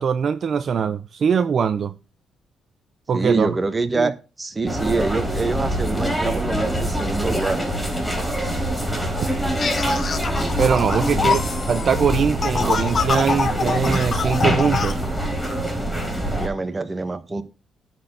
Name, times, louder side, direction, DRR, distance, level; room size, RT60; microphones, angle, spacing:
voice 1, 0.0-1.9 3.1-3.5 3.9-4.1 10.6-11.4 11.7-15.0, right 6 dB, 50° right, 0.6 m, -22 dB
voice 2, 3.1-4.1 4.4-7.6 11.1-11.3 16.4-17.4, right 3 dB, 25° right, 1.4 m, -25 dB
sound 1, 4.7-16.5, equal, 10° left, 4.1 m, -24 dB
sound 2, 9.6-14.9, left 5 dB, 45° left, 0.9 m, -26 dB
11.5 x 4.5 x 7.4 m
cardioid pair, 90°, 0 cm